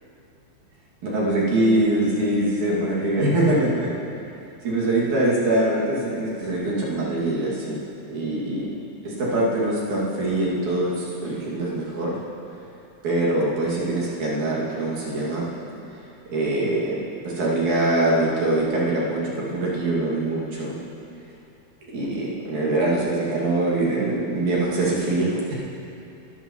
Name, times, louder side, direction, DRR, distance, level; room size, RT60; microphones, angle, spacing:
voice 1, 1.0-4.0 4.6-7.8 8.1-8.7 9.1-12.2 13.0-15.5 16.3-20.8 21.9-25.5, right 1 dB, 80° right, -6 dB, 3.7 m, -23 dB
22.0 x 12.0 x 3.1 m, 2.8 s
omnidirectional pair, 3.3 m